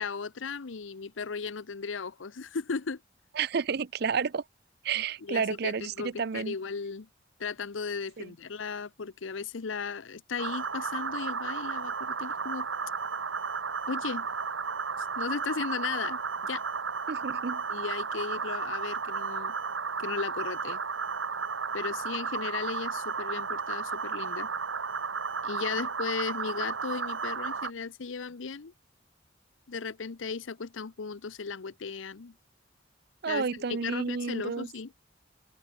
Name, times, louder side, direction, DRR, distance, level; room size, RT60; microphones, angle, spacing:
voice 1, 0.0-3.0 5.0-7.1 7.4-12.7 13.9-14.3 15.0-16.6 17.7-19.5 20.0-20.8 21.7-24.5 25.4-28.7 29.7-32.3 33.2-34.9, left 5 dB, 90° left, 0.7 m, -36 dB
voice 2, 3.4-4.4 4.8-6.6 8.2-8.3 17.1-17.6 33.2-34.7, right 6 dB, 55° right, 0.5 m, -31 dB
sound 1, 10.4-27.7, right 5 dB, 85° right, 1.6 m, -33 dB
open air
head